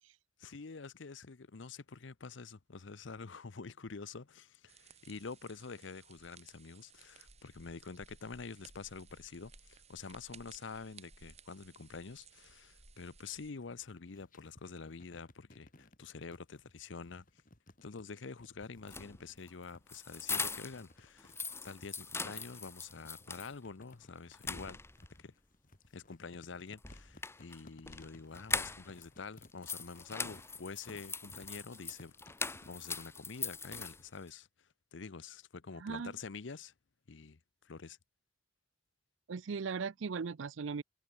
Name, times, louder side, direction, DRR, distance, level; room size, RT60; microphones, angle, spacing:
voice 1, 0.4-17.2 17.8-24.8 25.2-25.3 25.9-34.5 34.9-36.7 37.1-37.4 37.6-38.0, left 4 dB, 65° left, 0.8 m, -47 dB
sound 1, 4.7-13.5, right 5 dB, 35° right, 7.6 m, -59 dB
sound 2, 13.8-32.9, left 1 dB, 45° left, 2.6 m, -61 dB
sound 3, 18.8-20.9 21.2-23.5 23.9-24.0 24.3-25.2 26.8-29.1 29.4-34.3, left 4 dB, 15° left, 1.1 m, -41 dB
voice 2, 35.8-36.1 39.3-40.8, right 5 dB, 75° right, 0.5 m, -38 dB
head